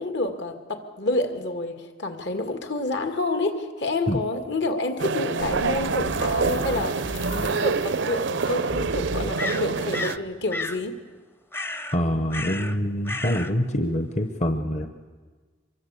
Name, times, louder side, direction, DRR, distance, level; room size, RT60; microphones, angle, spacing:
voice 1, 0.0-7.0 7.3-11.0, left 2 dB, 65° left, 6 dB, 2.2 m, -28 dB
sound 1, 5.0-10.2, right 4 dB, 75° right, 0.7 m, -26 dB
sound 2, 5.4-10.9, left 1 dB, 80° left, 2.2 m, -38 dB
sound 3, 9.4-10.2 10.5-10.8 11.5-12.0 12.3-12.8 13.0-13.5, left 2 dB, 10° left, 0.7 m, -32 dB
voice 2, 11.9-14.9, equal, 35° left, 7 dB, 1.0 m, -25 dB
24.5 x 23.0 x 8.4 m, 1.4 s
head